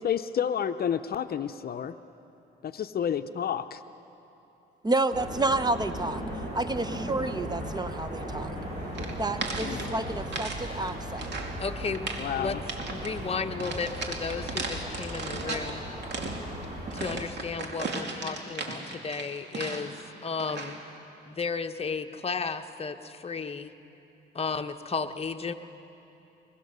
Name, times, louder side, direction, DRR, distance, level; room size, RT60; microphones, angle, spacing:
voice 1, 0.0-1.9 2.6-3.8 9.6-9.9 12.2-12.6, left 8 dB, 50° left, 9 dB, 0.7 m, -30 dB
voice 2, 4.8-6.2 6.5-8.5 9.2-11.3, right 2 dB, 20° right, 11 dB, 0.8 m, -29 dB
sound 1, 5.1-17.2, right 1 dB, 35° right, 6.2 m, -37 dB
sound 2, 8.9-10.6 10.9-11.6 11.9-12.3 12.7-13.1 13.6-15.7 16.0-20.0 20.4-20.8, right 3 dB, 60° right, 2.6 m, -36 dB
voice 3, 11.6-12.0 12.3-12.6 12.9-15.8 16.9-20.0 20.2-20.8 21.3-23.7 24.3-25.5, left 5 dB, 30° left, 6 dB, 1.0 m, -33 dB
23.0 x 21.5 x 6.8 m, 2.9 s
cardioid pair, 90°, 20 cm